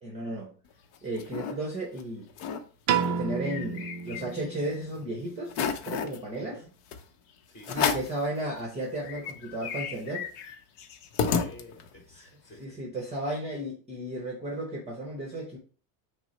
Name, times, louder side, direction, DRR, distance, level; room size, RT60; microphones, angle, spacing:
voice 1, 0.0-0.6 1.0-2.3 3.0-6.6 7.7-10.3 12.1-12.2 12.6-15.6, right 1 dB, 15° right, 0.8 m, -34 dB
Rabbit snarls and growls, 0.7-1.5 2.0-2.1 2.3-2.6 3.0-4.6 5.0-5.1 5.5-6.2 6.9-7.0 7.6-8.2 8.7-8.8 9.0-12.0, left 7 dB, 55° left, 0.7 m, -32 dB
Piano, 2.9-5.1, right 7 dB, 35° right, 0.4 m, -30 dB
voice 2, 6.4-6.7 7.5-7.8 11.2-12.8, left 2 dB, 25° left, 1.7 m, -50 dB
6.0 x 2.0 x 4.1 m
cardioid pair, 150°, 46 cm